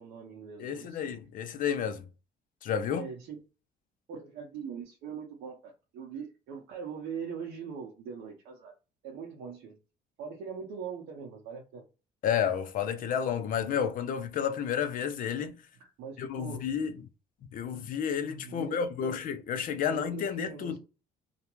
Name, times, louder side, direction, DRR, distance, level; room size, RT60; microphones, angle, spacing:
voice 1, 0.0-1.1 2.9-3.4 4.1-8.7 9.0-9.8 10.2-11.8 15.8-16.7 18.4-19.2 19.8-20.8, right 6 dB, 80° right, 0.7 m, -41 dB
voice 2, 0.6-2.1 2.6-3.1 12.2-15.6 16.2-17.0 17.5-20.8, left 8 dB, 55° left, 0.5 m, -31 dB
2.3 x 2.1 x 2.9 m
cardioid pair, 110°, 17 cm